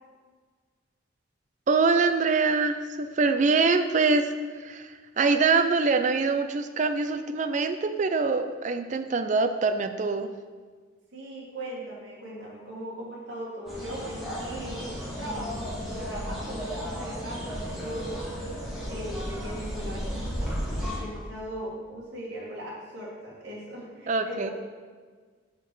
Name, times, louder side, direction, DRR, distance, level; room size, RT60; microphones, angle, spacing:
voice 1, 1.7-4.9 5.2-10.3 24.1-24.5, right 4 dB, 40° right, 9 dB, 0.4 m, -24 dB
voice 2, 11.1-18.2 18.9-20.5 21.0-24.5, equal, 55° right, -6 dB, 1.9 m, -39 dB
sound 1, 13.7-21.0, equal, ahead, 1.5 m, -34 dB
6.0 x 4.4 x 6.0 m, 1.5 s
head